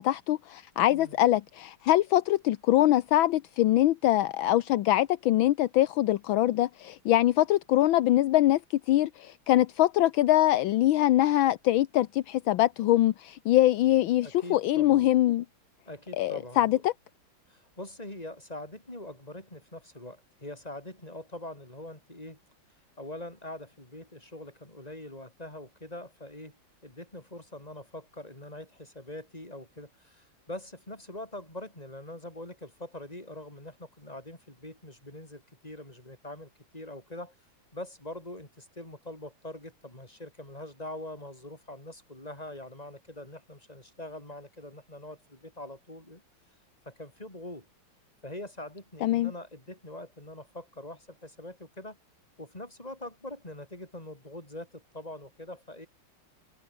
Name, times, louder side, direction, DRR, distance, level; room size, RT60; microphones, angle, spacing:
voice 1, 0.0-8.6 8.9-15.4 16.2-16.9 49.0-49.3, left 14 dB, 75° left, 1.5 m, -23 dB
voice 2, 14.2-15.1 15.9-16.8 17.5-22.4 23.0-26.6 26.8-37.3 37.7-46.2 46.9-47.7 48.2-52.0 52.4-55.9, left 1 dB, 15° left, 5.5 m, -43 dB
omnidirectional pair, 2.3 m